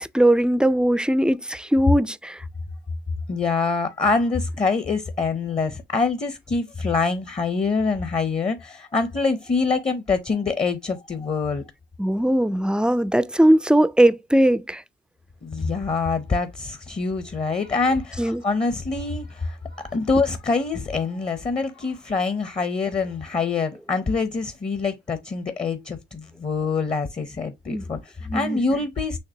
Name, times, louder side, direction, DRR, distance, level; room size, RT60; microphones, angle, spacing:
voice 1, 0.0-2.4 12.0-14.8 18.2-18.4 27.7-27.8 28.3-28.6, right 1 dB, 5° right, 0.3 m, -19 dB
voice 2, 3.3-11.6 15.4-29.2, left 4 dB, 30° left, 0.7 m, -25 dB
6.5 x 2.9 x 2.8 m
cardioid pair, 90°, 20 cm